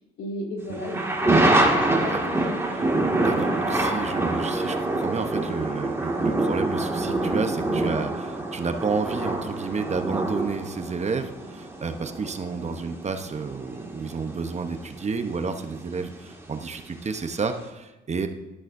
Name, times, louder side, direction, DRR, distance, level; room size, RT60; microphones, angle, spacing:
voice 1, 0.2-2.8, left 1 dB, 75° left, 0 dB, 2.3 m, -35 dB
sound 1, 0.7-16.3 16.6-16.7, right 2 dB, 15° right, 2.0 m, -26 dB
voice 2, 3.2-18.3, right 5 dB, 35° right, 7 dB, 0.9 m, -31 dB
12.5 x 11.0 x 2.7 m, 1.0 s
cardioid pair, 90°, 20 cm